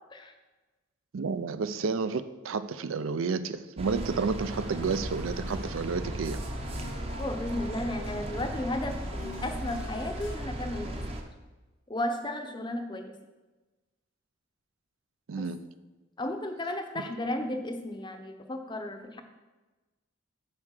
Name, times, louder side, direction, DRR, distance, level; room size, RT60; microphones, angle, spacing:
voice 1, 1.1-6.4 15.3-15.6, right 4 dB, 75° right, 12 dB, 0.4 m, -31 dB
sound 1, 3.8-11.2, right 1 dB, 30° right, 0.7 m, -36 dB
sound 2, 4.4-10.3, left 2 dB, 75° left, 1.3 m, -47 dB
voice 2, 7.2-11.0 11.9-13.2 15.4-15.5 16.2-19.2, left 1 dB, 20° left, 6 dB, 0.6 m, -34 dB
7.3 x 4.5 x 6.4 m, 1.2 s
head